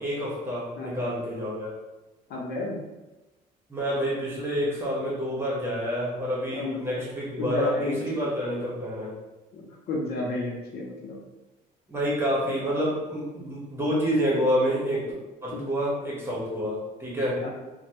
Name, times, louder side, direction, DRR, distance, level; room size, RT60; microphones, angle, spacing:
voice 1, 0.0-1.7 3.7-9.1 11.9-15.0 15.4-17.4, equal, 15° right, -6 dB, 1.2 m, -28 dB
voice 2, 2.3-2.8 6.5-7.0 7.4-8.3 9.5-11.2 15.5-15.7 17.4-17.5, left 2 dB, 70° left, -2 dB, 0.8 m, -32 dB
3.1 x 2.3 x 2.9 m, 1.1 s
cardioid pair, 110°, 17 cm